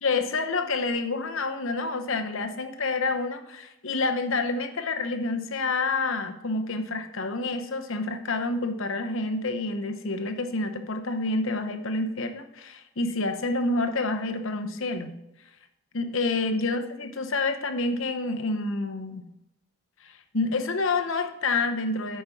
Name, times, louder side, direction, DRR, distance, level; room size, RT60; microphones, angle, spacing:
voice 1, 0.0-15.1 15.9-19.3 20.0-22.2, left 3 dB, 60° left, 6 dB, 0.9 m, -28 dB
9.0 x 5.2 x 5.9 m, 0.84 s
head